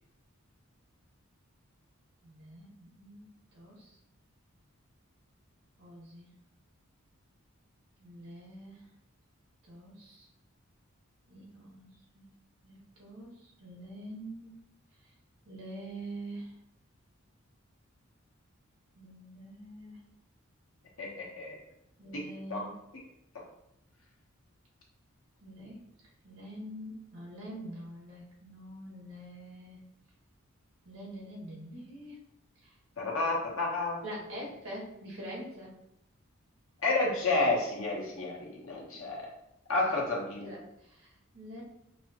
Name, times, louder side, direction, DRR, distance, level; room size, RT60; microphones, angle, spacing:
voice 1, 2.2-3.3 3.5-4.0 5.8-6.3 8.0-8.9 9.6-10.3 11.3-12.3 12.6-14.6 15.0-15.1 15.4-16.6 18.9-20.0 22.0-22.7 25.4-25.8 26.2-29.9 30.8-32.2 32.6-32.7 34.0-35.7 40.4-41.6, right 1 dB, 75° right, -4 dB, 1.4 m, -45 dB
voice 2, 21.0-21.6 22.1-22.7 23.3-23.4 33.0-34.0 36.8-39.3 39.7-40.5, left 2 dB, 70° left, -3 dB, 1.0 m, -31 dB
5.8 x 2.1 x 2.9 m, 0.83 s
head